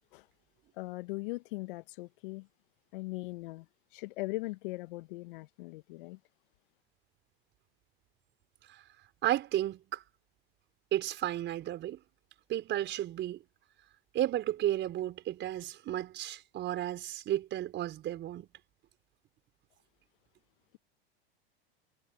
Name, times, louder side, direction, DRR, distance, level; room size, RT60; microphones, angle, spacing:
voice 1, 0.8-2.5 2.9-3.6 3.9-6.2, left 23 dB, 60° left, 1.3 m, -39 dB
voice 2, 9.2-10.0 10.9-12.0 12.5-13.4 14.1-18.5, right 13 dB, 40° right, 5.6 m, -33 dB
hypercardioid pair, 100°, 29 cm